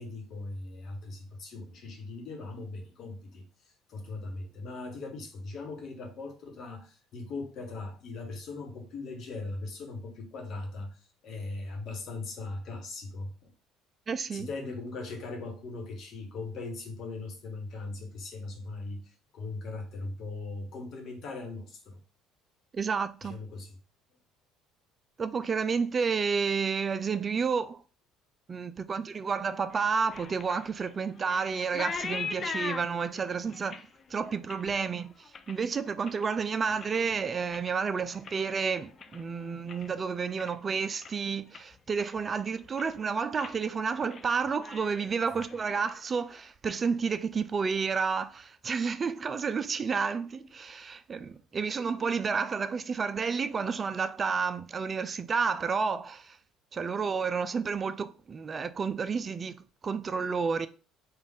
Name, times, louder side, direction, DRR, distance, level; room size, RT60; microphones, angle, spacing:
voice 1, 0.0-3.4 3.9-13.3 14.3-22.0 23.2-23.7, left 3 dB, 55° left, 1.1 m, -39 dB
voice 2, 14.1-14.5 22.7-23.4 25.2-27.8 28.5-33.8 34.1-35.1 35.5-56.4 56.7-59.6 59.8-60.7, right 5 dB, 35° right, 0.3 m, -30 dB
sound 1, 29.7-36.4 36.7-37.2 37.5-39.9 40.2-40.7 41.0-41.1 41.5-42.3 42.6-43.0 43.4-43.6 43.9-44.3 44.5-46.4, left 5 dB, 40° left, 0.4 m, -41 dB
3.7 x 2.4 x 3.6 m
supercardioid pair, 85°, 0 cm